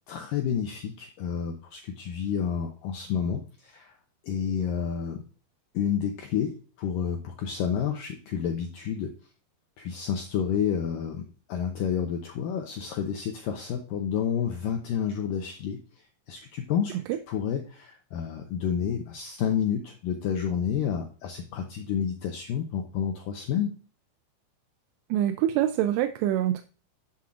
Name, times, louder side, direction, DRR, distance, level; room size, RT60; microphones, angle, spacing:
voice 1, 0.1-4.0 4.2-5.2 5.7-9.1 9.8-17.0 17.3-23.8, left 8 dB, 85° left, 4 dB, 2.0 m, -30 dB
voice 2, 25.1-26.6, right 12 dB, 85° right, 8 dB, 2.7 m, -25 dB
11.5 x 7.2 x 2.5 m, 0.39 s
omnidirectional pair, 4.9 m